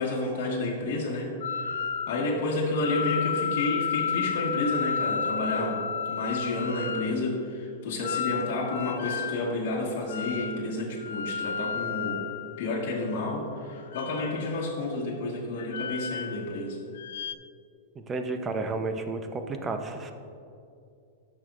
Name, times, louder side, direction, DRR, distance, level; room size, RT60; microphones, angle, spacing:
voice 1, 0.0-1.8 2.1-12.3 12.6-16.8, left 2 dB, 60° left, -5 dB, 1.3 m, -30 dB
sound 1, 1.4-2.3 2.7-7.1 8.0-9.4 10.1-10.7 11.0-13.2 13.8-14.7 15.6-16.6 16.9-17.3, left 7 dB, 80° left, 0.3 m, -32 dB
voice 2, 18.0-20.1, right 3 dB, 20° right, 6 dB, 0.6 m, -32 dB
12.0 x 6.5 x 2.4 m, 2.5 s
hypercardioid pair, 140°, 0 cm